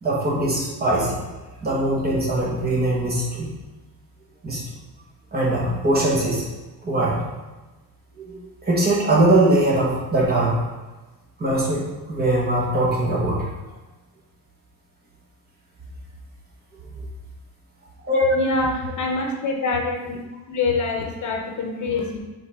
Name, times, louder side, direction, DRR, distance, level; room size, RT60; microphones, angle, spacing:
voice 1, 0.0-1.1 1.6-3.5 4.4-4.6 5.3-6.4 6.8-7.2 8.2-8.4 8.6-10.6 11.4-13.4 18.0-18.4, right 1 dB, 25° right, -4 dB, 1.6 m, -21 dB
voice 2, 18.3-20.2 20.5-22.2, left 3 dB, 50° left, 2 dB, 1.0 m, -25 dB
7.7 x 4.5 x 3.7 m, 1.1 s
cardioid pair, 155°, 38 cm